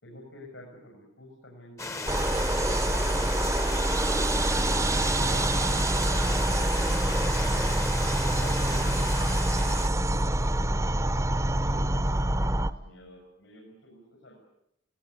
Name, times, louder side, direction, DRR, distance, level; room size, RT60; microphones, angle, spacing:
voice 1, 0.0-3.5 4.0-6.7 8.4-9.5 10.2-11.1 11.6-14.3, left 1 dB, 80° left, -1 dB, 6.6 m, -48 dB
sound 1, 1.8-9.9, left 3 dB, 15° left, 0.9 m, -35 dB
sound 2, 2.1-12.7, right 1 dB, 15° right, 0.8 m, -26 dB
20.0 x 18.5 x 9.9 m, 0.78 s
head